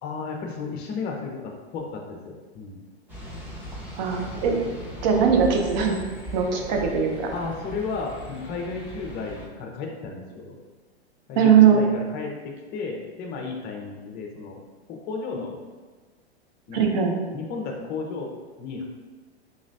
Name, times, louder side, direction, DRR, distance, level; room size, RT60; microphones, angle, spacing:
voice 1, 0.0-2.8 4.2-4.7 7.3-10.6 11.3-14.6 14.9-15.6 16.7-16.8 17.3-18.8, left 4 dB, 30° left, 1 dB, 0.6 m, -34 dB
sound 1, 3.1-9.5, equal, 5° right, 0.8 m, -38 dB
voice 2, 4.0-4.6 5.0-6.0 6.3-7.3 11.4-11.8 16.7-17.2, right 7 dB, 45° right, 2 dB, 0.6 m, -20 dB
4.0 x 3.0 x 2.6 m, 1.3 s
figure-of-eight pair, 100°, 33 cm